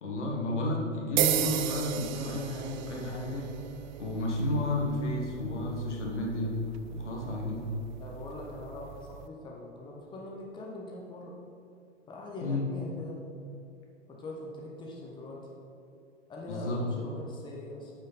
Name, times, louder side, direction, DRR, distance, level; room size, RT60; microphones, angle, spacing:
voice 1, 0.0-3.5 4.0-6.5 6.9-7.6 12.4-12.6 16.5-16.8, left 1 dB, 70° left, -2 dB, 1.9 m, -32 dB
sound 1, 1.2-9.3, right 11 dB, 40° right, 0.4 m, -36 dB
voice 2, 8.0-11.3 12.1-13.2 14.1-15.4 16.3-17.9, left 1 dB, 15° left, -2 dB, 1.1 m, -42 dB
8.7 x 5.5 x 5.5 m, 2.6 s
figure-of-eight pair, 105°, 36 cm